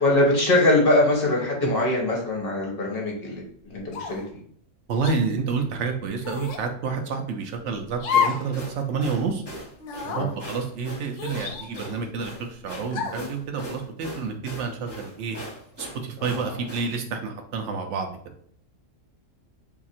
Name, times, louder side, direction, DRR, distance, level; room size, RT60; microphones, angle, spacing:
voice 1, 0.0-4.2 10.2-10.3 16.3-16.4, left 2 dB, 50° left, -1 dB, 1.0 m, -22 dB
sound 1, 3.9-4.3 5.0-5.2 6.2-6.7 8.0-8.5 8.9-9.0 9.8-10.3 11.2-12.1 12.9-13.3, left 7 dB, 80° left, 0.9 m, -28 dB
voice 2, 4.9-9.4 10.1-15.4 15.8-18.1, right 5 dB, 70° right, 4 dB, 0.9 m, -29 dB
sound 2, 7.9-16.9, equal, 20° left, 1.1 m, -40 dB
2.8 x 2.5 x 4.0 m, 0.62 s
omnidirectional pair, 1.3 m